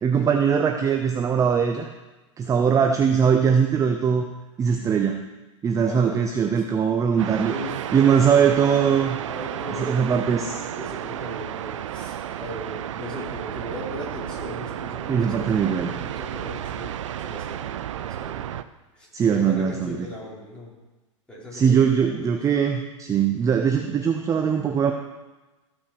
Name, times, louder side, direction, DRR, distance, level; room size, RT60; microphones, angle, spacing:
voice 1, 0.0-1.9 2.4-4.2 4.6-5.2 5.6-7.5 7.9-9.2 9.8-10.6 15.1-15.9 19.1-20.1 21.5-24.9, right 7 dB, 20° right, 5 dB, 0.7 m, -21 dB
voice 2, 2.4-2.8 5.8-6.2 7.5-8.6 9.3-17.7 18.2-18.5 18.9-20.7 21.3-22.1, equal, 5° left, -6 dB, 4.1 m, -37 dB
sound 1, 7.2-18.6, right 10 dB, 70° right, 0.6 m, -32 dB
14.5 x 6.1 x 4.9 m, 1.1 s
hypercardioid pair, 110°, 16 cm